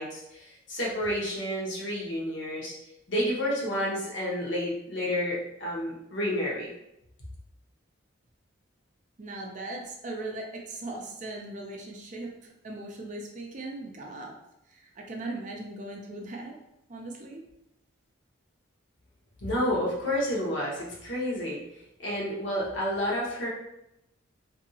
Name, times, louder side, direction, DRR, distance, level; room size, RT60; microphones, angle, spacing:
voice 1, 0.0-2.7 3.1-6.7 19.4-21.6 22.0-23.5, equal, 60° left, -4 dB, 0.9 m, -30 dB
voice 2, 9.2-14.4 14.7-16.6 16.9-17.5, right 2 dB, 35° right, 1 dB, 0.4 m, -39 dB
2.8 x 2.6 x 2.7 m, 0.85 s
head